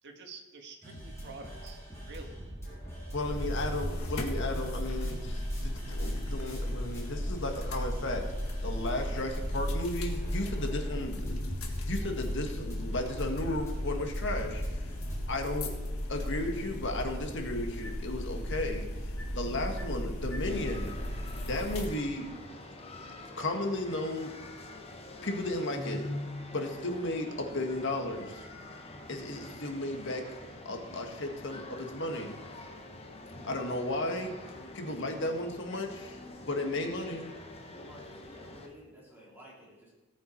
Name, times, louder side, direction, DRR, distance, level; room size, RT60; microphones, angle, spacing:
voice 1, 0.0-2.4, right 3 dB, 55° right, 3 dB, 1.7 m, -48 dB
sound 1, 0.8-15.2, right 1 dB, 15° left, 3.9 m, -43 dB
voice 2, 3.1-8.2 8.6-14.9 15.3-15.7 16.1-18.9 19.3-20.9 21.5-22.3 23.4-24.3 25.2-26.1 26.5-28.5 29.1-30.2 30.6-32.4 33.4-34.3 34.7-36.2 36.5-37.3, left 1 dB, 60° left, 4 dB, 1.7 m, -34 dB
sound 2, 3.2-21.9, left 1 dB, 85° left, 1.7 m, -35 dB
sound 3, 20.4-38.7, left 2 dB, 30° left, 1.2 m, -45 dB
voice 3, 37.7-39.9, equal, 10° right, -6 dB, 3.5 m, -52 dB
18.0 x 7.2 x 4.5 m, 1.2 s
head